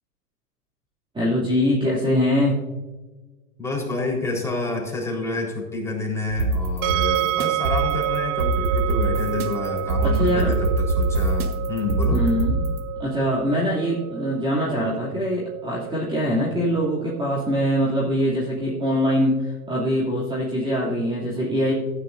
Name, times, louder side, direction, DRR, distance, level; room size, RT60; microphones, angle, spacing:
voice 1, 1.1-2.6 10.0-10.6 12.1-12.7 13.0-21.7, equal, 10° right, -6 dB, 2.6 m, -23 dB
voice 2, 3.6-12.2, left 3 dB, 5° left, -3 dB, 3.9 m, -29 dB
sound 1, 6.3-12.8, right 2 dB, 75° right, 1.6 m, -24 dB
sound 2, 6.8-19.8, right 14 dB, 35° right, 0.7 m, -30 dB
15.0 x 9.7 x 2.6 m, 1.2 s
hypercardioid pair, 110°, 45 cm